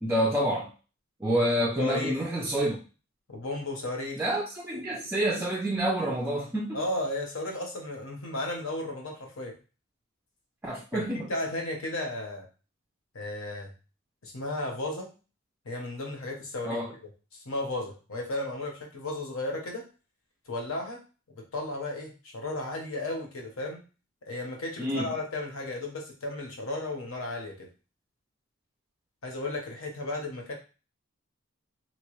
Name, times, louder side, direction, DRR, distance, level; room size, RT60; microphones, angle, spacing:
voice 1, 0.0-0.7 1.2-2.8 4.2-6.8 10.6-11.3 16.7-16.9 24.8-25.1, right 1 dB, 10° right, -2 dB, 0.3 m, -28 dB
voice 2, 1.8-2.2 3.3-4.2 6.7-9.6 10.9-12.5 13.1-13.7 14.2-15.1 15.6-16.8 17.4-19.8 20.5-21.0 21.4-23.8 24.3-27.7 29.2-30.5, left 2 dB, 80° left, 1 dB, 0.9 m, -34 dB
2.9 x 2.2 x 3.0 m, 0.34 s
head